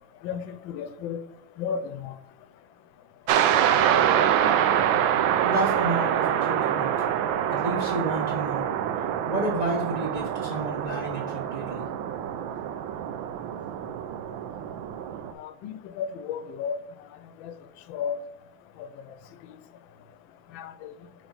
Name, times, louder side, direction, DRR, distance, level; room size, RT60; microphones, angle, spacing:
voice 1, 0.2-1.2 1.6-2.1 15.4-16.8 17.4-17.5 17.9-18.2 20.5-20.9, left 7 dB, 90° left, 1.3 m, -33 dB
sound 1, 3.3-15.3, right 9 dB, 85° right, 1.3 m, -25 dB
voice 2, 5.4-7.2 7.5-8.7 9.3-11.9, right 2 dB, 30° right, 0.7 m, -31 dB
8.1 x 3.5 x 4.0 m
omnidirectional pair, 2.1 m